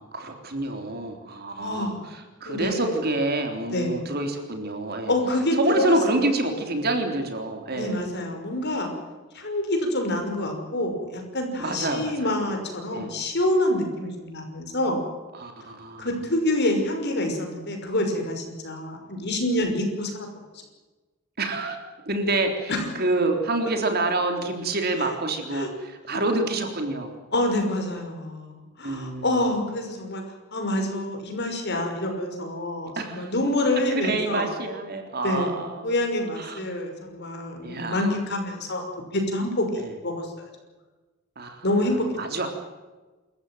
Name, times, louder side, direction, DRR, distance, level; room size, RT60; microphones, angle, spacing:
voice 1, 0.0-5.1 5.6-8.0 11.6-12.3 12.9-13.1 15.3-16.1 21.4-21.8 22.1-27.1 28.8-29.4 33.0-33.3 33.7-35.9 36.4-36.6 37.6-38.1 39.8-39.9 41.4-42.5, right 2 dB, 45° right, 5 dB, 3.6 m, -27 dB
voice 2, 1.6-2.0 2.5-2.9 3.7-4.0 5.1-6.0 6.2-6.3 7.8-8.9 9.3-15.0 16.0-20.3 22.7-22.9 25.0-25.1 25.5-25.7 26.1-26.2 27.3-30.2 30.5-34.5 35.2-35.6 35.8-38.9 39.1-40.5 41.6-42.1, left 1 dB, 50° left, 4 dB, 5.9 m, -27 dB
27.5 x 14.5 x 9.3 m, 1.2 s
head